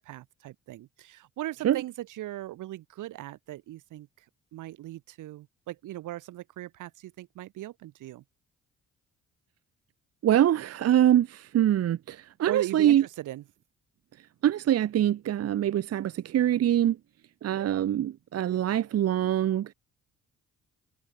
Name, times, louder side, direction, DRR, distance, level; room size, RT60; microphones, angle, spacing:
voice 1, 0.0-4.2 4.5-8.2 12.5-13.4, right 15 dB, 85° right, 3.0 m, -38 dB
voice 2, 10.2-13.0 14.2-17.0 17.4-19.7, right 11 dB, 55° right, 0.8 m, -24 dB
cardioid pair, 90°, 30 cm